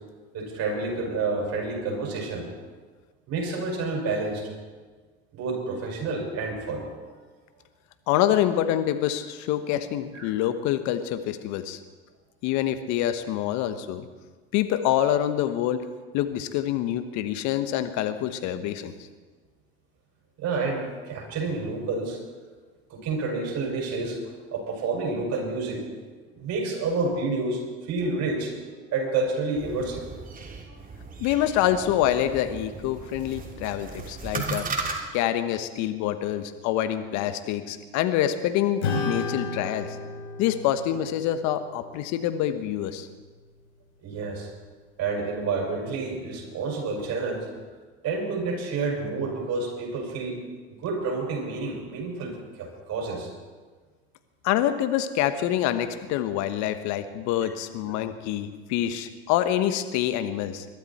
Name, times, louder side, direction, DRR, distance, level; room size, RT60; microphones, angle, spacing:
voice 1, 0.3-2.5 3.3-4.4 5.3-6.9 10.1-10.3 20.4-22.2 22.9-24.2 24.5-25.8 26.4-30.0 30.7-30.8 44.0-44.5 45.0-47.5 48.0-50.4 50.7-53.3 57.8-58.0, right 3 dB, 50° right, 0 dB, 6.1 m, -29 dB
voice 2, 8.1-11.8 12.4-14.1 14.5-15.8 16.1-18.9 31.2-34.7 35.1-40.0 40.4-43.1 54.4-60.7, left 11 dB, 60° left, 10 dB, 1.4 m, -26 dB
sound 1, 29.6-35.0, right 4 dB, 25° right, 2.8 m, -36 dB
Acoustic guitar / Strum, 38.8-43.6, left 3 dB, 85° left, 4.3 m, -34 dB
22.0 x 12.5 x 4.4 m, 1.4 s
hypercardioid pair, 80°, 32 cm